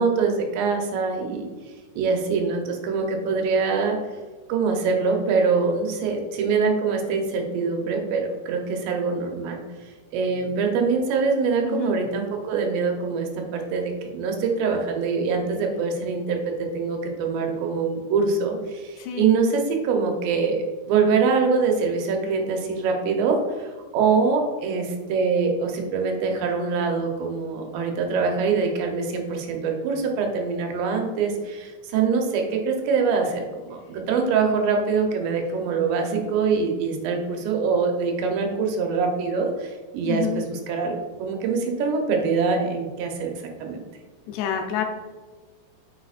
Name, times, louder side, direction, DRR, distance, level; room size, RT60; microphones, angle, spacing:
voice 1, 0.0-1.5 2.0-4.0 4.5-9.6 10.1-33.5 33.7-43.3 43.6-43.8, right 5 dB, 80° right, 2 dB, 3.0 m, -24 dB
voice 2, 11.6-12.0 19.0-19.3 40.1-40.4 44.3-44.8, left 9 dB, 80° left, 4 dB, 2.6 m, -27 dB
8.4 x 6.3 x 2.4 m, 1.3 s
omnidirectional pair, 5.0 m